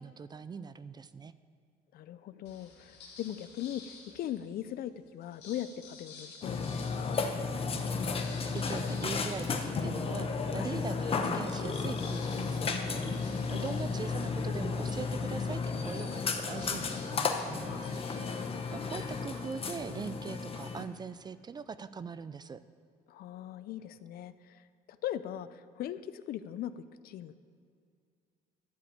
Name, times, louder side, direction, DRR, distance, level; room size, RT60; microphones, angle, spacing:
voice 1, 0.0-1.3 7.7-8.1 8.4-13.2 13.5-22.6, right 5 dB, 25° right, 14 dB, 0.4 m, -42 dB
voice 2, 1.9-7.2 10.5-10.7 13.5-13.8 16.6-16.8 17.7-18.0 18.3-18.5 23.1-27.4, left 11 dB, 65° left, 14 dB, 0.5 m, -40 dB
sound 1, 2.4-4.6 5.2-10.4 10.9-11.0 11.2-19.2, left 4 dB, 80° left, 2.4 m, -53 dB
Burping eructation, 6.4-20.8, left 4 dB, 35° left, 0.9 m, -33 dB
12.0 x 5.0 x 8.5 m, 2.3 s
cardioid pair, 110°, 17 cm